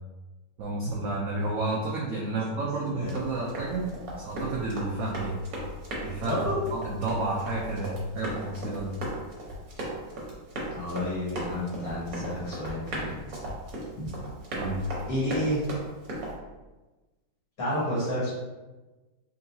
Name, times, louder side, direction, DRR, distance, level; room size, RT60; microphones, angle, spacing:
voice 1, 0.6-3.9 4.2-5.4 6.0-6.4 6.7-8.9 14.5-14.8, right 2 dB, 80° right, -3 dB, 0.7 m, -31 dB
Run, 3.0-16.3, right 1 dB, 55° right, 1.3 m, -37 dB
voice 2, 6.2-6.6 10.7-13.2 14.0-14.1 15.1-15.6 17.6-18.3, left 1 dB, 50° left, -8 dB, 1.8 m, -30 dB
3.8 x 3.5 x 2.7 m, 1.2 s
omnidirectional pair, 2.2 m